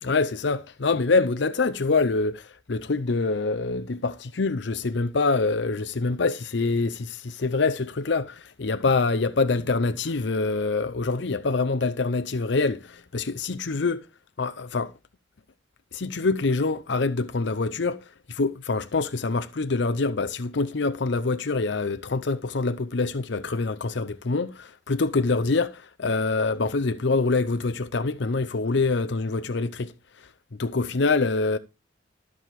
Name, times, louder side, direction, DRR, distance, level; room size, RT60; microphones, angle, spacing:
voice 1, 0.0-14.1 14.4-14.9 15.9-31.6, left 3 dB, 60° left, 0.6 m, -25 dB
13.0 x 4.9 x 7.5 m
head